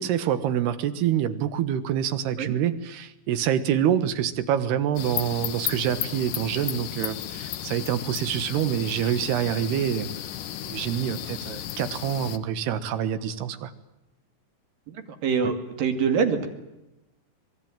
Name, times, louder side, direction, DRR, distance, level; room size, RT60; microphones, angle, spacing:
voice 1, 0.0-10.1 10.6-13.7 15.4-15.5, right 10 dB, 85° right, 13 dB, 3.4 m, -26 dB
sound 1, 5.0-12.4, left 12 dB, 65° left, 2.4 m, -34 dB
voice 2, 15.2-16.5, right 6 dB, 65° right, 8 dB, 3.9 m, -24 dB
25.5 x 21.5 x 9.0 m, 0.93 s
omnidirectional pair, 4.5 m